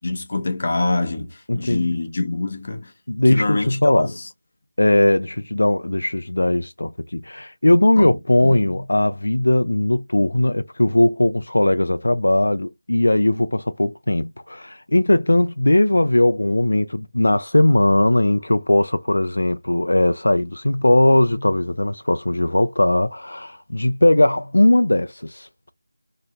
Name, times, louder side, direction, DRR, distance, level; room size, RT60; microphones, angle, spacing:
voice 1, 0.0-2.9 3.3-4.1 8.0-8.1 8.4-8.6, left 2 dB, 40° left, 0.6 m, -25 dB
voice 2, 1.5-1.9 3.1-4.1 4.8-25.7, left 1 dB, 85° left, 0.3 m, -19 dB
2.8 x 2.1 x 2.6 m
figure-of-eight pair, 175°, 0 cm